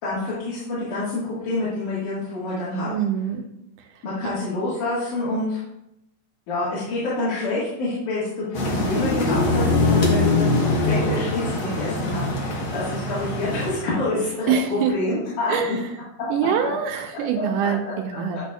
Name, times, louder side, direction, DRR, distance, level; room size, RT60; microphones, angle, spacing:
voice 1, 0.0-2.9 4.0-5.6 6.5-15.8 17.3-17.7 18.3-18.4, left 2 dB, 75° left, -10 dB, 3.2 m, -27 dB
voice 2, 2.9-3.4 14.5-14.9 15.5-15.8 16.3-18.4, right 8 dB, 90° right, 3 dB, 2.2 m, -24 dB
sound 1, 8.5-13.7, left 2 dB, 55° left, 1.5 m, -22 dB
10.5 x 4.2 x 2.3 m, 0.83 s
omnidirectional pair, 3.6 m